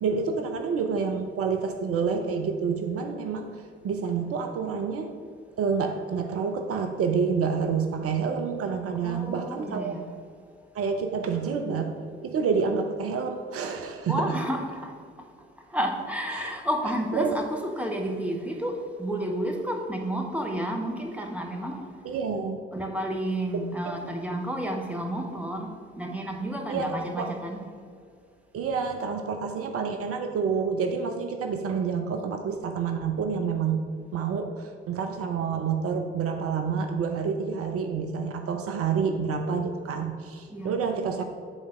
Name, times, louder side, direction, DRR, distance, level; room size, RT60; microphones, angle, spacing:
voice 1, 0.0-5.1 5.6-9.9 10.7-14.4 16.3-16.5 17.1-17.4 22.0-22.7 24.0-24.1 26.7-27.4 28.5-33.8 34.1-41.2, right 5 dB, 45° right, 5 dB, 0.7 m, -28 dB
voice 2, 9.0-10.1 14.1-14.9 15.7-21.9 22.7-27.6 40.5-40.7, right 1 dB, 5° right, 2 dB, 1.2 m, -31 dB
9.0 x 4.0 x 4.8 m, 2.2 s
figure-of-eight pair, 45°, 32 cm